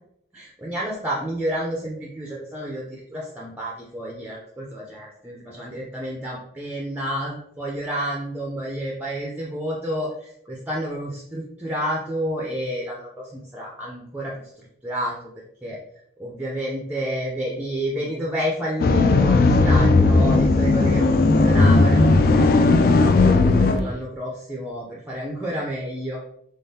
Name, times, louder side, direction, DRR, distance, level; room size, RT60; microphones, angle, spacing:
voice 1, 0.3-15.2 15.6-15.8 16.2-22.4 22.7-26.2, equal, 10° right, -3 dB, 0.5 m, -30 dB
sound 1, 18.8-23.8, left 3 dB, 50° left, 0.3 m, -16 dB
3.7 x 3.4 x 2.7 m, 0.72 s
head